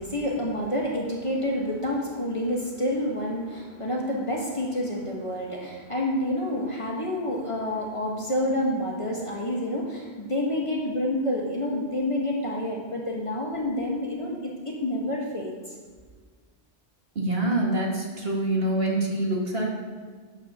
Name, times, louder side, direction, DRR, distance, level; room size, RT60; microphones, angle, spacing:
voice 1, 0.0-15.8, left 1 dB, 30° left, -2 dB, 1.7 m, -28 dB
voice 2, 17.2-19.7, right 1 dB, 65° right, -1 dB, 2.1 m, -25 dB
12.0 x 8.3 x 3.8 m, 1.5 s
omnidirectional pair, 1.1 m